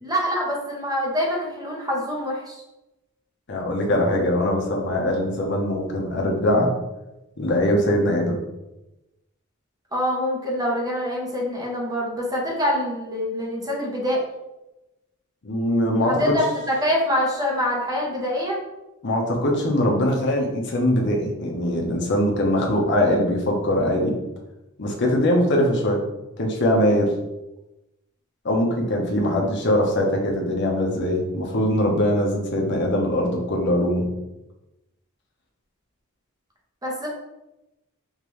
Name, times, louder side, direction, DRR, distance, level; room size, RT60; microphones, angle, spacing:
voice 1, 0.0-2.6 9.9-14.2 16.1-18.6 26.8-27.0 36.8-37.1, equal, 20° right, -2 dB, 0.9 m, -25 dB
voice 2, 3.5-6.7 7.4-8.4 15.4-16.3 19.0-24.1 24.8-26.0 26.4-27.1 28.4-34.1, left 1 dB, 55° left, 0 dB, 0.8 m, -22 dB
5.2 x 2.6 x 3.2 m, 0.96 s
head